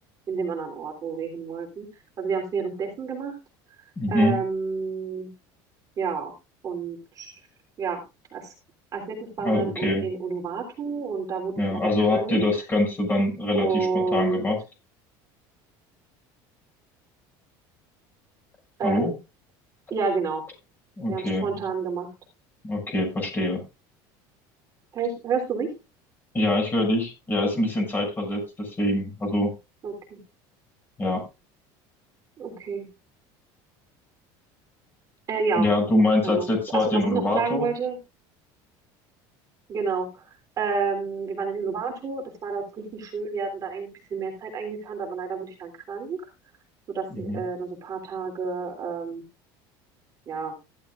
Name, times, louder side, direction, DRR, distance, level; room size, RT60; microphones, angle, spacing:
voice 1, 0.3-1.9 2.2-3.4 4.1-5.3 6.0-6.3 6.6-7.4 7.8-8.0 8.3-8.5 8.9-12.4 13.5-14.4 18.8-19.0 19.9-20.4 21.1-22.1 24.9-25.7 29.8-30.2 32.4-32.9 35.3-35.7 36.2-38.0 39.7-40.2 40.6-46.3 46.9-49.2 50.3-50.6, right 5 dB, 35° right, 1 dB, 3.3 m, -30 dB
voice 2, 4.0-4.4 9.4-10.1 11.6-14.6 18.8-19.1 21.0-21.4 22.6-23.6 26.3-29.5 31.0-31.2 35.6-37.7 47.2-47.4, left 1 dB, 20° left, 2 dB, 6.7 m, -24 dB
15.0 x 12.0 x 2.5 m, 0.27 s
cardioid pair, 150°, 10 cm